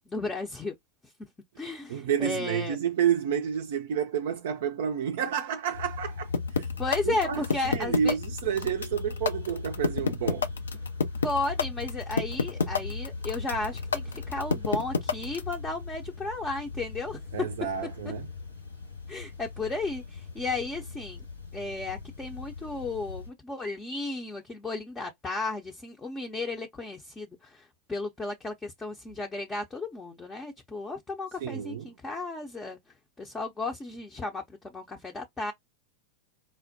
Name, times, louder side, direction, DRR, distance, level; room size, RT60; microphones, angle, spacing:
voice 1, 0.1-0.7 1.6-2.8 6.8-8.2 11.2-17.2 19.1-21.2 21.5-32.8 33.2-35.5, left 3 dB, 15° left, 0.6 m, -34 dB
voice 2, 1.9-6.3 6.5-6.7 7.0-10.5 17.3-18.3 31.4-31.9, right 8 dB, 55° right, 0.4 m, -30 dB
sound 1, 5.7-23.3, left 4 dB, 85° left, 1.5 m, -39 dB
sound 2, 6.3-15.5, left 5 dB, 70° left, 0.4 m, -26 dB
4.3 x 2.1 x 2.6 m
figure-of-eight pair, 90°, 0 cm